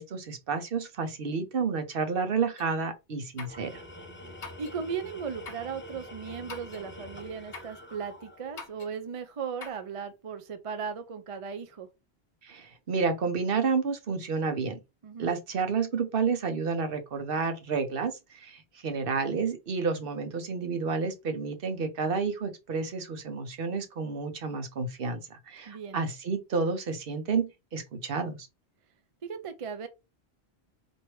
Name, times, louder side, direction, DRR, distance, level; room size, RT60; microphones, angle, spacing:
voice 1, 0.0-3.7 12.4-14.8 15.2-28.5, right 5 dB, 60° right, 0.9 m, -30 dB
sound 1, 2.6-2.7 3.4-3.7 4.4-4.8 5.4-5.7 6.5-6.9 7.5-7.8 8.6-8.9 9.6-9.9, left 4 dB, 70° left, 1.0 m, -44 dB
Tools, 3.4-8.7, left 1 dB, 15° left, 0.6 m, -46 dB
voice 2, 4.6-11.9 15.0-15.3 25.7-26.0 29.2-29.9, right 6 dB, 45° right, 0.4 m, -37 dB
4.5 x 2.7 x 3.1 m
omnidirectional pair, 1.1 m